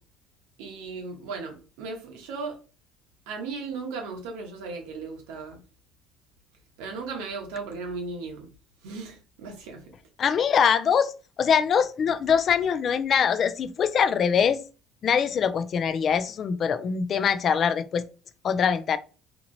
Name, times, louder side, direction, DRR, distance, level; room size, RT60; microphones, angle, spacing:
voice 1, 0.6-2.6 3.3-5.6 6.8-8.5 8.8-9.8, right 4 dB, 90° right, 0.9 m, -36 dB
voice 2, 10.2-11.1 11.4-14.6 15.0-18.0 18.4-19.0, left 7 dB, 45° left, 0.3 m, -23 dB
2.9 x 2.8 x 2.6 m
cardioid pair, 110°, 0 cm